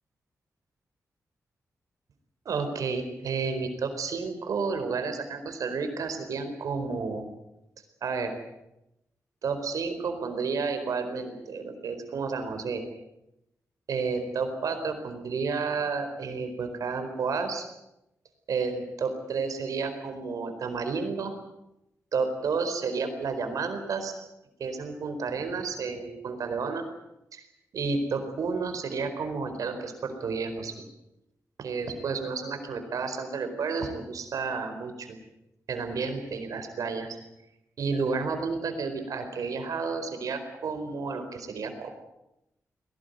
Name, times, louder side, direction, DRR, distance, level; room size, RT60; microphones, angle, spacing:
voice 1, 2.4-7.2 8.0-8.3 9.4-12.8 13.9-17.6 18.5-21.3 22.1-24.1 24.6-26.8 27.3-27.4 27.7-30.7 31.6-35.2 35.7-37.2 37.8-41.9, right 4 dB, 85° right, 7 dB, 4.4 m, -31 dB
21.0 x 18.5 x 9.4 m, 0.89 s
wide cardioid pair, 90°, 6 cm